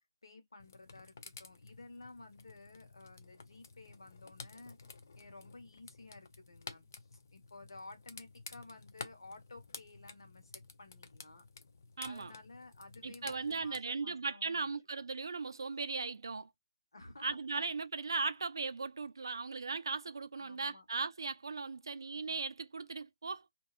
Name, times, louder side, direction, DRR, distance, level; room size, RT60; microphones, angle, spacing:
voice 1, 0.2-4.8 5.1-6.8 7.1-11.4 12.0-14.7 16.9-17.4 20.3-20.8 21.9-22.3, left 2 dB, 70° left, 1.1 m, -54 dB
sound 1, 0.6-13.8, left 4 dB, 40° left, 0.4 m, -52 dB
voice 2, 12.0-12.3 13.0-16.5 17.2-23.5, right 4 dB, 60° right, 0.4 m, -38 dB
2.7 x 2.2 x 2.3 m
hypercardioid pair, 175°, 3 cm